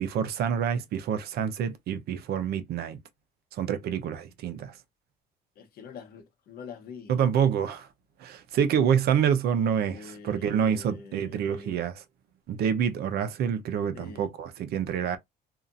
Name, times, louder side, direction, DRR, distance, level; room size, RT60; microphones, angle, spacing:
voice 1, 0.0-3.0 3.5-4.8 7.1-7.9 8.2-12.0 12.5-15.2, right 8 dB, 70° right, 0.7 m, -27 dB
voice 2, 5.6-7.1 9.8-11.8 13.9-14.3, left 5 dB, 65° left, 1.0 m, -45 dB
2.8 x 2.4 x 2.5 m
cardioid pair, 110°, 17 cm